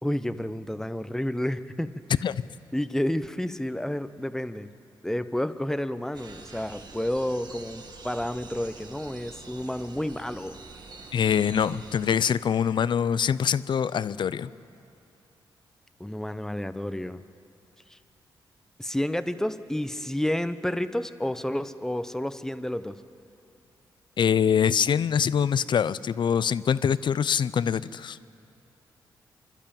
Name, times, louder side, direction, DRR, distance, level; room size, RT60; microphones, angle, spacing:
voice 1, 0.0-1.9 2.7-4.7 5.0-10.6 16.0-17.2 17.9-18.0 18.8-23.0, left 1 dB, 5° left, 12 dB, 0.9 m, -30 dB
sound 1, 6.1-12.2, right 4 dB, 50° right, 1.8 m, -46 dB
voice 2, 11.1-14.5 24.2-28.2, left 8 dB, 60° left, 17 dB, 0.5 m, -24 dB
27.0 x 12.0 x 9.0 m, 2.7 s
cardioid pair, 55°, 9 cm